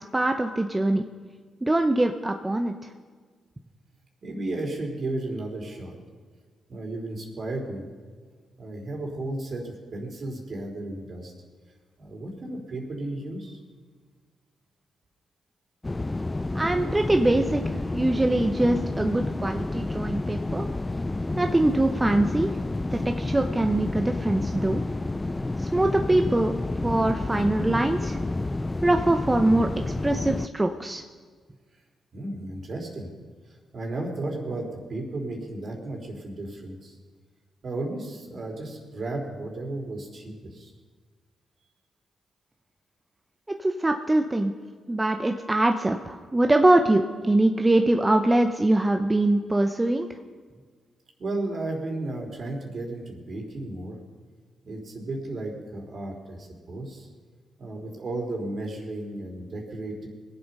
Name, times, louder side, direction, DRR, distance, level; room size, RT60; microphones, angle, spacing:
voice 1, 0.1-1.0 1.6-2.7 16.5-20.6 21.3-22.5 22.9-24.8 25.6-26.5 26.8-28.2 28.8-29.7 30.0-31.0 43.6-44.5 44.9-50.1, right 1 dB, 20° right, 5 dB, 0.9 m, -23 dB
voice 2, 4.2-5.9 6.7-7.9 8.6-11.3 12.0-13.6 26.2-26.3 32.1-33.1 33.5-36.9 37.6-40.7 51.2-54.0 54.6-57.1 57.6-60.1, right 2 dB, 55° right, 2 dB, 3.6 m, -34 dB
sound 1, 15.8-30.5, left 2 dB, 25° left, 0.5 m, -30 dB
21.0 x 8.0 x 5.6 m, 1.5 s
supercardioid pair, 50°, 0 cm